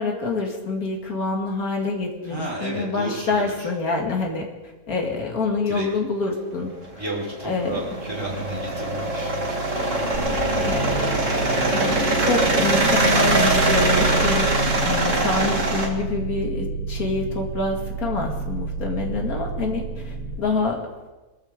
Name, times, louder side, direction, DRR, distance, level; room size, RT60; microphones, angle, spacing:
voice 1, 0.0-4.5 4.9-6.7 7.4-7.8 10.6-11.2 11.7-14.5 14.8-20.9, left 3 dB, 70° left, 1 dB, 2.6 m, -26 dB
voice 2, 2.2-3.7 5.7-5.9 7.0-11.1, right 2 dB, 15° right, -4 dB, 5.0 m, -33 dB
sound 1, 6.8-15.9, right 2 dB, 55° right, 2.3 m, -22 dB
sound 2, 10.1-20.4, right 4 dB, 85° right, 2.9 m, -31 dB
23.5 x 14.0 x 3.8 m, 1.2 s
omnidirectional pair, 1.6 m